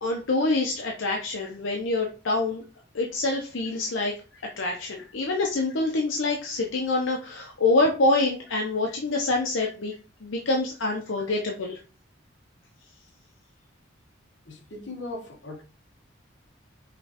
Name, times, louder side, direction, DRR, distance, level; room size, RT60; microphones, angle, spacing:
voice 1, 0.0-2.6 2.9-4.1 4.6-9.9 10.2-11.8, left 2 dB, 85° left, 0.7 m, -26 dB
voice 2, 14.4-15.6, left 2 dB, 65° left, 1.1 m, -40 dB
5.2 x 3.1 x 2.9 m
head